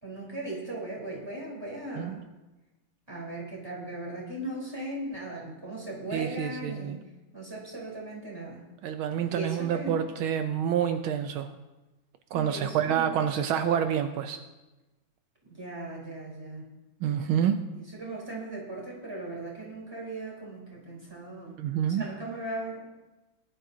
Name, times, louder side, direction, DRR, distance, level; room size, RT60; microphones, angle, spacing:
voice 1, 0.0-2.2 3.1-6.9 7.3-8.6 9.3-10.0 12.3-13.2 15.4-16.7 17.7-21.5 22.0-22.8, right 2 dB, 10° right, -5 dB, 3.9 m, -38 dB
voice 2, 6.1-7.0 8.8-11.5 12.3-14.4 17.0-17.6 21.6-22.0, right 9 dB, 80° right, 8 dB, 1.5 m, -28 dB
19.0 x 11.5 x 2.8 m, 1.1 s
omnidirectional pair, 2.3 m